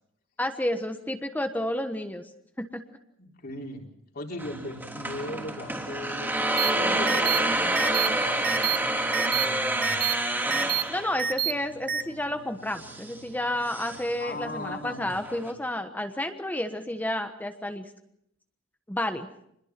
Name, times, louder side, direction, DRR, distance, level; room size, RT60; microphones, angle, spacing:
voice 1, 0.4-2.2 2.6-2.8 10.9-17.9 18.9-19.3, left 1 dB, 10° left, 7 dB, 1.3 m, -31 dB
voice 2, 3.2-3.9 4.1-10.0 14.2-15.2, left 1 dB, 50° left, 1 dB, 4.1 m, -39 dB
sound 1, 4.4-15.5, right 1 dB, 10° right, 3.2 m, -29 dB
sound 2, 6.6-6.7 7.1-7.4 7.7-8.1 8.4-8.8 9.1-9.4 9.8-10.1 10.5-10.8 11.2-11.5 11.9-12.0, right 9 dB, 50° right, 1.0 m, -27 dB
26.5 x 21.0 x 6.0 m, 0.74 s
head